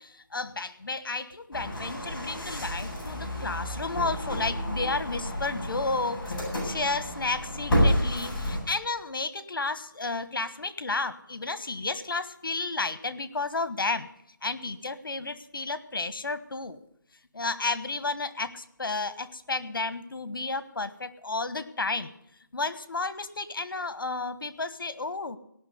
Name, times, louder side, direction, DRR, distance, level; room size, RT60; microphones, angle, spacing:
voice 1, 0.0-14.1 14.4-16.8 17.3-22.1 22.5-25.4, left 3 dB, 80° left, 13 dB, 1.4 m, -32 dB
sound 1, 1.5-8.6, equal, 5° left, 6.5 m, -30 dB
17.5 x 6.1 x 9.4 m, 0.76 s
hypercardioid pair, 180°, 11 cm